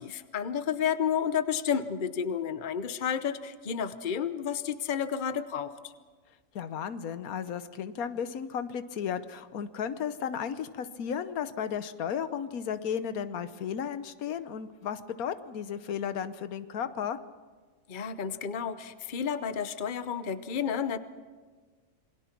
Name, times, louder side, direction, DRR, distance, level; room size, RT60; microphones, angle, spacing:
voice 1, 0.0-5.7 17.9-21.0, left 7 dB, 40° left, 12 dB, 0.9 m, -31 dB
voice 2, 6.5-17.2, left 8 dB, 85° left, 12 dB, 1.3 m, -34 dB
27.5 x 21.5 x 6.0 m, 1.4 s
omnidirectional pair, 1.5 m